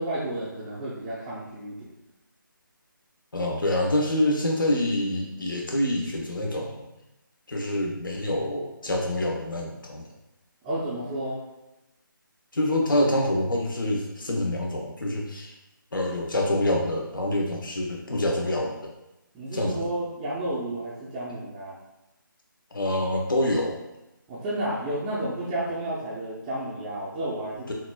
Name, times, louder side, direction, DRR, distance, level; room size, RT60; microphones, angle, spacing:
voice 1, 0.0-1.9 10.6-11.4 19.3-21.8 24.3-27.7, right 1 dB, 10° right, -11 dB, 0.5 m, -31 dB
voice 2, 3.3-6.8 7.5-10.1 12.5-15.5 15.9-18.9 19.5-19.9 22.7-23.8 27.7-27.8, left 1 dB, 70° left, 1 dB, 1.0 m, -26 dB
5.8 x 2.6 x 2.2 m, 0.95 s
figure-of-eight pair, 155°, 11 cm